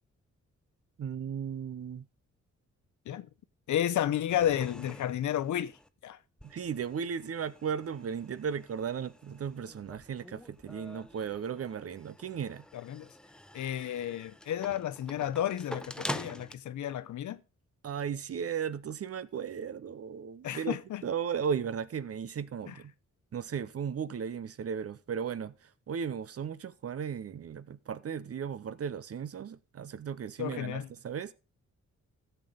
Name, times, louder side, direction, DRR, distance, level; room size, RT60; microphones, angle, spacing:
voice 1, 1.0-2.1 6.4-12.6 17.8-20.8 21.0-22.9 23.3-31.3, right 7 dB, 55° right, 0.8 m, -36 dB
voice 2, 3.7-5.8 6.0-6.2 12.7-13.1 13.5-17.4 20.4-21.0 22.7-22.8 30.4-30.9, left 11 dB, 85° left, 0.8 m, -32 dB
sound 1, 4.3-5.9 6.4-16.5, left 1 dB, 5° left, 0.6 m, -46 dB
14.5 x 6.8 x 3.9 m
cardioid pair, 100°, 29 cm